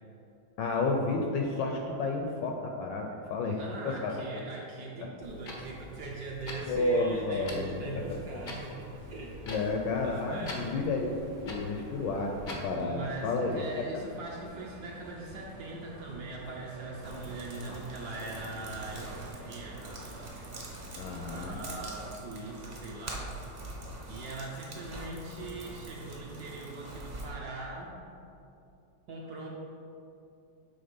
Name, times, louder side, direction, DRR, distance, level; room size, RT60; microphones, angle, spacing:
voice 1, 0.6-3.6 3.8-4.1 5.0-5.1 6.7-7.8 8.1-8.2 9.4-11.2 11.4-13.6 21.0-21.6, left 3 dB, 75° left, 2 dB, 1.1 m, -31 dB
voice 2, 3.4-9.4 10.0-10.9 12.7-20.5 21.2-23.7 24.1-28.0 29.1-29.5, right 2 dB, 65° right, -2 dB, 1.1 m, -41 dB
Clock, 5.2-12.8, left 1 dB, 90° left, 0.4 m, -45 dB
sound 1, 7.9-21.8, right 1 dB, 85° right, 1.8 m, -50 dB
sound 2, 17.0-27.3, right 2 dB, 45° right, 0.7 m, -44 dB
7.8 x 3.5 x 5.2 m, 2.6 s
omnidirectional pair, 2.3 m